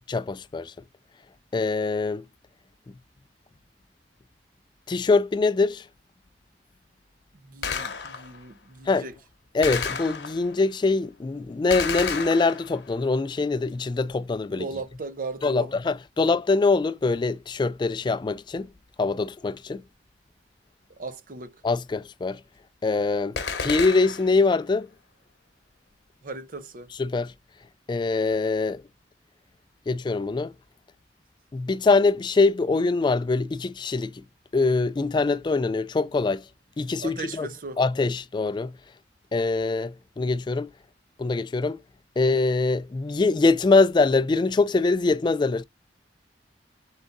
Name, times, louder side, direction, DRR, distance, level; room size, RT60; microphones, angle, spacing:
voice 1, 0.1-0.7 1.5-2.2 4.9-5.9 8.9-9.0 9.5-14.6 15.4-18.7 19.0-19.8 21.6-22.4 22.8-24.9 27.0-27.3 27.9-28.8 29.9-30.5 31.5-34.2 34.5-36.4 36.8-37.5 37.8-38.8 39.3-40.7 41.2-41.8 42.2-45.6, left 3 dB, 25° left, 0.3 m, -23 dB
voice 2, 7.4-9.2 14.5-15.7 20.9-21.6 26.2-26.9 37.0-37.8, right 3 dB, 50° right, 0.7 m, -37 dB
Gunshot gunfire, 7.6-8.4 9.6-10.6 11.7-13.0 23.4-24.4, left 6 dB, 75° left, 0.9 m, -31 dB
3.8 x 3.7 x 3.8 m
head